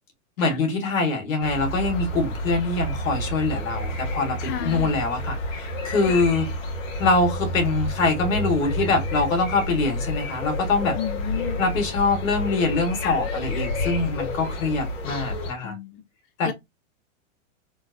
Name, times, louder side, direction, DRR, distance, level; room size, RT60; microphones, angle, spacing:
voice 1, 0.4-6.5 7.0-11.0 11.6-15.8 16.4-16.5, left 3 dB, 85° left, 1.8 m, -24 dB
sound 1, 1.4-15.5, left 1 dB, 70° left, 1.6 m, -29 dB
voice 2, 4.4-5.0 6.1-6.2 10.9-11.6 13.0-13.2 15.6-16.0 16.4-16.5, left 10 dB, 30° left, 0.6 m, -32 dB
3.7 x 2.6 x 2.6 m
hypercardioid pair, 125°, 39 cm